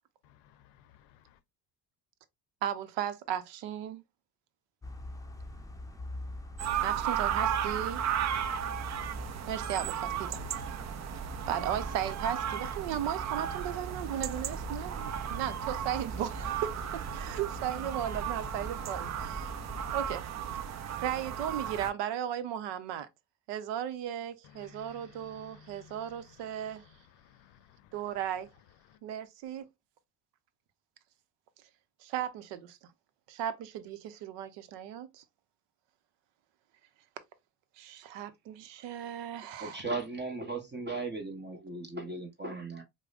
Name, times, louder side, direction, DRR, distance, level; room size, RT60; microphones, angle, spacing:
voice 1, 0.2-1.4 24.5-26.1 26.5-26.6 27.2-27.9 28.9-29.0, left 8 dB, 70° left, 0.6 m, -57 dB
voice 2, 2.6-4.0 6.8-8.0 9.5-10.8 11.5-19.5 19.9-20.2 21.0-23.1 23.5-26.8 27.9-28.5 29.0-29.7 32.0-32.8 33.3-35.2 37.8-39.8, right 10 dB, 80° right, 0.7 m, -36 dB
sound 1, 4.8-20.2, left 2 dB, 10° left, 0.6 m, -44 dB
sound 2, 6.6-21.9, right 9 dB, 40° right, 0.5 m, -35 dB
voice 3, 39.6-42.8, right 3 dB, 25° right, 0.9 m, -37 dB
4.7 x 2.1 x 2.4 m
supercardioid pair, 80°, 43 cm